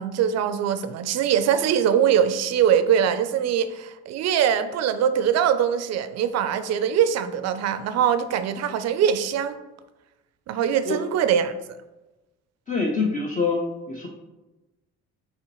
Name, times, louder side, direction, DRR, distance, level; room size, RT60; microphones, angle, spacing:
voice 1, 0.0-9.6 10.5-11.5, right 8 dB, 55° right, 0.4 m, -22 dB
voice 2, 12.7-14.1, left 4 dB, 25° left, 0.5 m, -25 dB
5.6 x 2.9 x 3.0 m
cardioid pair, 120°, 31 cm